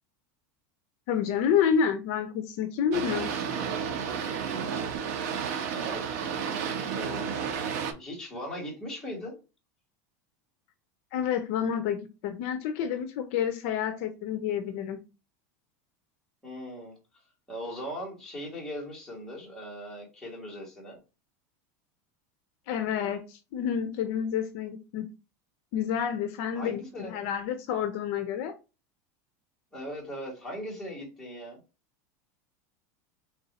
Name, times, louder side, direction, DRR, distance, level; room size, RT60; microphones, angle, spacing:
voice 1, 1.1-3.3 11.1-15.0 22.7-25.1 25.7-28.5, left 8 dB, 55° left, 8 dB, 0.5 m, -29 dB
Boat Water vehicle, 2.9-7.9, right 7 dB, 65° right, 0.7 m, -32 dB
voice 2, 5.7-6.0 6.6-9.4 16.4-16.9 17.5-21.0 26.5-27.3 29.7-31.6, equal, 5° left, -3 dB, 1.4 m, -39 dB
3.4 x 2.6 x 4.0 m, 0.30 s
supercardioid pair, 160°, 9 cm